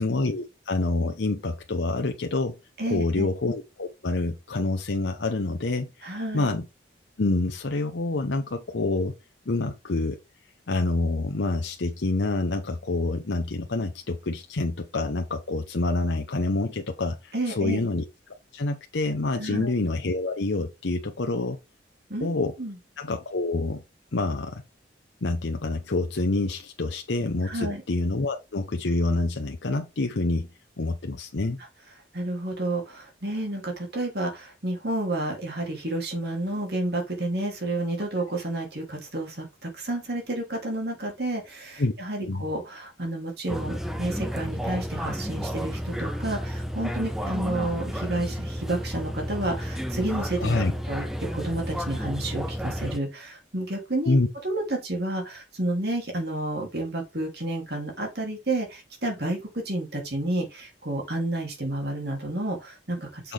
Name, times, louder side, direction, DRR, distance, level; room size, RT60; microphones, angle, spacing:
voice 1, 0.0-2.6 2.9-6.6 7.2-9.1 9.5-10.2 10.7-18.0 18.5-21.6 22.2-22.5 23.0-23.8 24.1-24.6 25.2-30.5 30.8-31.6 41.8-41.9 42.2-42.4 50.4-50.7 54.1-54.3 63.2-63.3, left 2 dB, 75° left, 0.8 m, -27 dB
voice 2, 2.8-3.3 6.0-6.5 17.3-17.8 19.4-19.7 22.1-22.3 22.6-22.8 27.4-27.8 32.1-51.1 51.3-54.2 54.4-63.3, right 1 dB, 55° right, 2.8 m, -30 dB
sound 1, 43.5-53.0, equal, ahead, 0.7 m, -32 dB
6.7 x 5.9 x 3.4 m
head